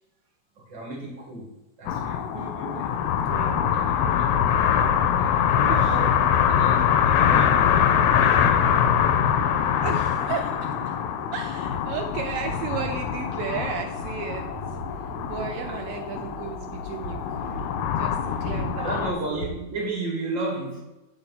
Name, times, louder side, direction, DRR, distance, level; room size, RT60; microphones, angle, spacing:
voice 1, 0.7-2.3 2.7-2.9 3.7-4.7 5.2-8.7 15.6-15.8 18.7-20.8, right 2 dB, 35° right, -3 dB, 2.6 m, -34 dB
sound 1, 1.9-19.1, left 8 dB, 90° left, 2.7 m, -23 dB
voice 2, 2.2-3.6 5.6-6.0 7.8-8.0 9.3-11.0 11.3-14.5 15.0-17.4 17.8-19.0, right 7 dB, 85° right, 3 dB, 1.9 m, -35 dB
sound 2, 11.6-19.5, left 2 dB, 60° left, 1.4 m, -37 dB
9.6 x 4.5 x 5.5 m, 1.0 s
omnidirectional pair, 4.5 m